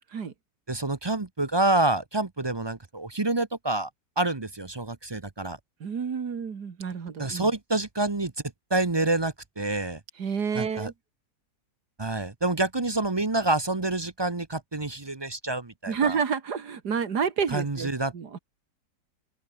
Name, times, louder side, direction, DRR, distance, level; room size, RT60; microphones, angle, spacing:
voice 1, 0.7-3.9 4.2-5.6 7.2-8.3 8.7-10.0 10.5-10.9 12.0-16.2 17.5-18.1, right 2 dB, 20° right, 0.7 m, -27 dB
voice 2, 5.8-7.5 10.2-10.9 15.9-18.4, right 6 dB, 85° right, 2.5 m, -29 dB
open air
omnidirectional pair, 1.7 m